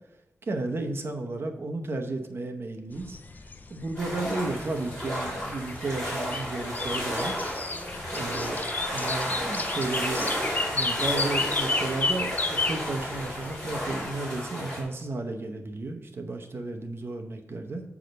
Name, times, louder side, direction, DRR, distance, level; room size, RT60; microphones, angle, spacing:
voice 1, 0.4-3.2 3.7-7.4 8.1-10.3 10.7-17.8, right 2 dB, 50° right, 4 dB, 0.8 m, -33 dB
sound 1, 2.9-14.1, left 3 dB, 35° left, 0.5 m, -33 dB
sound 2, 4.0-14.8, equal, 10° left, 3.2 m, -32 dB
7.6 x 4.9 x 5.3 m, 0.95 s
wide cardioid pair, 155°, 5 cm